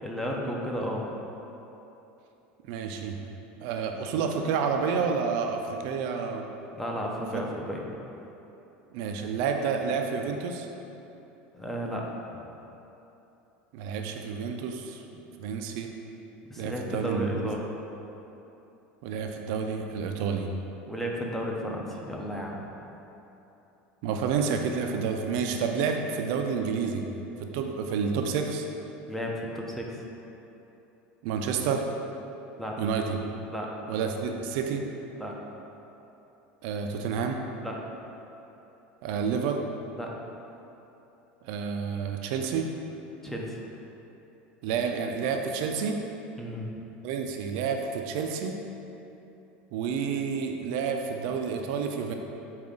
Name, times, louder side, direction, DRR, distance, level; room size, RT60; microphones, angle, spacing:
voice 1, 0.0-1.1 6.7-7.8 11.5-12.4 16.5-17.6 20.9-22.7 29.1-30.0 32.6-32.8 33.5-33.7 35.2-35.4 37.6-37.8 40.0-40.1 43.2-43.6 46.4-46.7, equal, 5° left, -2 dB, 0.5 m, -33 dB
voice 2, 2.7-3.2 3.6-6.5 8.9-10.7 13.7-15.0 15.4-15.9 16.6-17.5 19.0-20.5 24.0-27.0 27.4-28.7 31.2-31.8 32.8-33.2 33.9-34.8 36.6-37.4 39.0-39.6 41.4-42.7 44.6-46.0 47.0-48.6 49.7-52.1, right 6 dB, 70° right, 4 dB, 0.3 m, -29 dB
4.9 x 2.3 x 3.6 m, 3.0 s
supercardioid pair, 115°, 5 cm